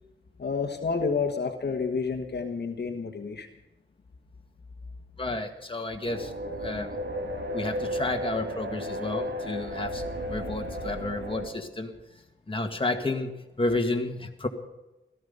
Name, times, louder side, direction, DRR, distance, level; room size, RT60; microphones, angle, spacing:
voice 1, 0.4-3.5, left 5 dB, 60° left, 3 dB, 1.3 m, -29 dB
voice 2, 5.2-6.3 6.6-6.9 7.5-11.9 12.5-13.3 13.6-14.5, left 2 dB, 25° left, 3 dB, 1.9 m, -31 dB
sound 1, 6.0-11.5, equal, 65° right, 2.3 m, -34 dB
17.0 x 13.5 x 5.4 m, 1.0 s
wide cardioid pair, 80°, 20 cm